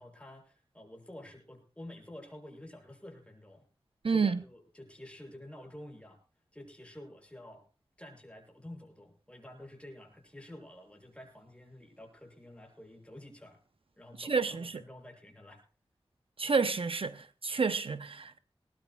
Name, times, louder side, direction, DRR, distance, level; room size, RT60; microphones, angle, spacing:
voice 1, 0.0-3.6 4.0-6.2 6.5-7.6 8.0-13.6 14.0-15.6, left 1 dB, 10° left, 6.7 m, -50 dB
voice 2, 4.0-4.4 14.2-14.8 16.4-18.4, right 5 dB, 65° right, 0.7 m, -30 dB
20.5 x 20.0 x 2.3 m
wide cardioid pair, 80°, 10 cm